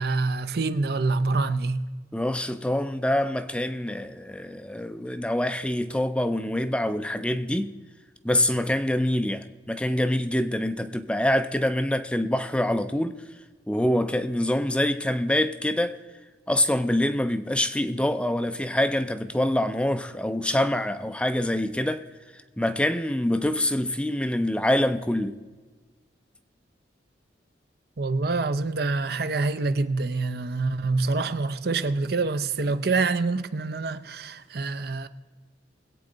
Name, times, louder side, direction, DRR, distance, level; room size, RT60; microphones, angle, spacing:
voice 1, 0.0-1.9 28.0-35.1, right 3 dB, 55° right, 0.6 m, -26 dB
voice 2, 2.1-7.7 8.2-13.2 13.7-16.0 16.5-22.0 22.6-25.4, left 1 dB, 5° left, 0.4 m, -25 dB
21.5 x 8.5 x 3.9 m
head